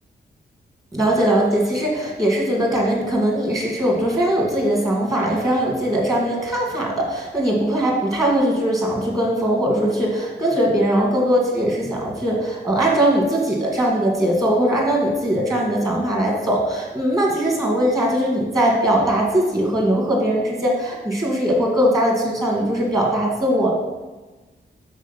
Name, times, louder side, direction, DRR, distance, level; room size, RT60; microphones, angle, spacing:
voice 1, 0.9-23.7, right 1 dB, 20° right, -2 dB, 1.5 m, -20 dB
6.4 x 3.7 x 5.5 m, 1.2 s
wide cardioid pair, 150°, 19 cm